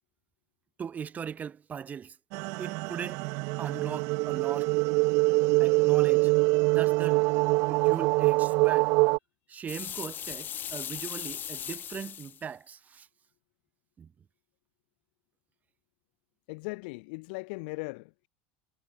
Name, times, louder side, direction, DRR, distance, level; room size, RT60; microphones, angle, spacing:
voice 1, 0.8-2.2 2.6-3.2 3.6-4.7 5.6-6.3 6.7-7.2 7.7-8.9 9.5-13.1 14.0-14.1, right 7 dB, 30° right, 2.9 m, -39 dB
sound 1, 2.3-9.2, right 27 dB, 60° right, 0.3 m, -24 dB
sound 2, 9.7-12.4, left 9 dB, 35° left, 1.9 m, -38 dB
voice 2, 16.5-18.3, left 30 dB, 70° left, 1.0 m, -38 dB
supercardioid pair, 115°, 6 cm